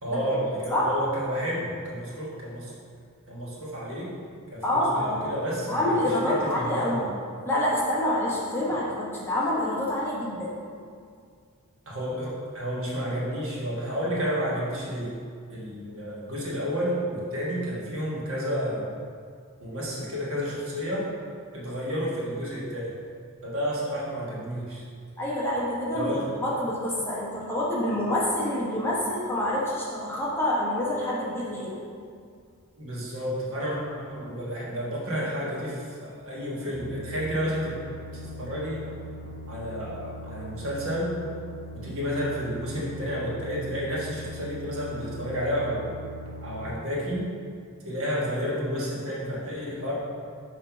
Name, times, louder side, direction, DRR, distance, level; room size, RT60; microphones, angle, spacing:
voice 1, 0.0-2.7 3.3-4.1 4.5-7.1 8.7-8.8 11.9-15.1 15.5-19.0 19.6-21.1 21.5-22.9 23.4-24.8 25.9-26.3 32.8-37.7 38.1-38.8 39.5-41.1 41.7-45.9 46.4-47.3 47.8-49.9, equal, 65° right, -5 dB, 1.4 m, -31 dB
voice 2, 4.6-5.2 5.7-7.1 7.4-10.5 25.2-26.1 26.4-31.8, left 1 dB, 10° left, -6 dB, 1.0 m, -27 dB
sound 1, 36.7-46.7, equal, 90° right, 0.9 m, -41 dB
5.8 x 3.2 x 5.6 m, 2.2 s
head